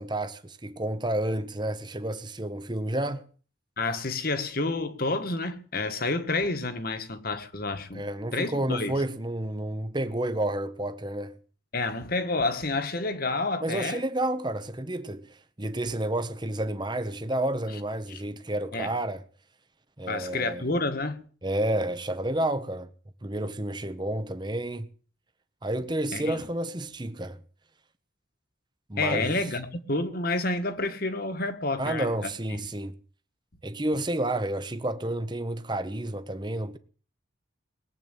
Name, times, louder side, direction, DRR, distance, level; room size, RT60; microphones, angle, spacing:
voice 1, 0.0-3.2 7.9-11.4 13.6-19.2 20.0-20.7 21.4-22.9 23.2-24.9 25.6-27.4 28.9-29.4 31.8-32.9 33.6-36.8, right 1 dB, 20° right, 1.0 m, -30 dB
voice 2, 3.8-8.0 8.3-9.0 11.7-14.0 18.1-18.2 18.7-18.9 20.1-21.3 26.1-26.4 29.0-32.3, left 2 dB, 45° left, 1.6 m, -29 dB
19.5 x 8.1 x 9.1 m
head